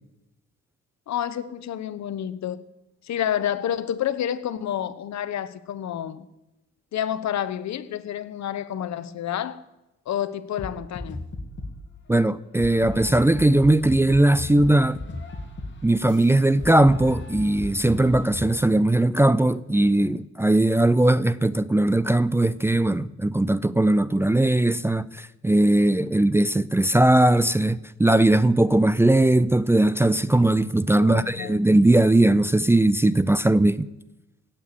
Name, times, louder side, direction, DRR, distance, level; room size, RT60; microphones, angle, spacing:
voice 1, 1.1-2.6 3.0-6.3 6.9-9.6 10.1-11.2 31.0-31.6, left 10 dB, 65° left, 1.0 m, -29 dB
sound 1, 10.6-11.9 12.6-18.6, left 2 dB, 40° left, 2.6 m, -36 dB
voice 2, 12.1-15.0 15.8-33.9, right 1 dB, 10° right, 0.4 m, -19 dB
16.5 x 6.9 x 9.5 m
cardioid pair, 90°, 30 cm